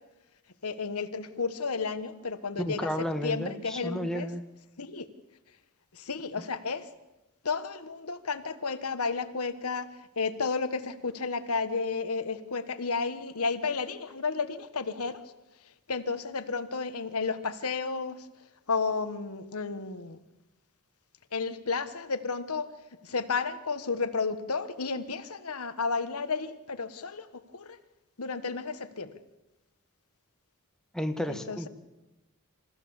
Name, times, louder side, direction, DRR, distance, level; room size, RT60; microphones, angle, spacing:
voice 1, 0.6-2.9 3.2-4.3 4.8-5.1 5.9-6.9 7.4-9.9 10.2-15.2 15.9-18.2 18.7-20.2 21.3-22.7 23.0-27.3 27.5-27.8 28.2-29.1 31.3-31.7, left 4 dB, 75° left, 10 dB, 1.3 m, -32 dB
voice 2, 2.6-4.4 30.9-31.7, equal, 5° left, 6 dB, 1.2 m, -32 dB
27.5 x 15.0 x 7.1 m, 1.0 s
head